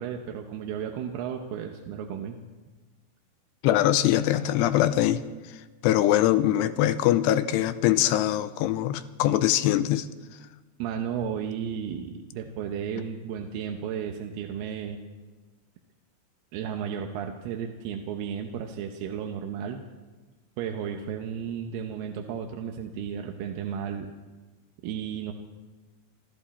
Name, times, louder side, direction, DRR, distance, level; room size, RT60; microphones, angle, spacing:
voice 1, 0.0-2.4 10.8-15.0 16.5-19.8 20.6-24.1 24.8-25.3, right 8 dB, 75° right, 3 dB, 2.7 m, -33 dB
voice 2, 3.6-5.2 5.8-10.1, left 13 dB, 85° left, 12 dB, 2.7 m, -22 dB
27.0 x 13.0 x 4.2 m, 1.3 s
omnidirectional pair, 5.0 m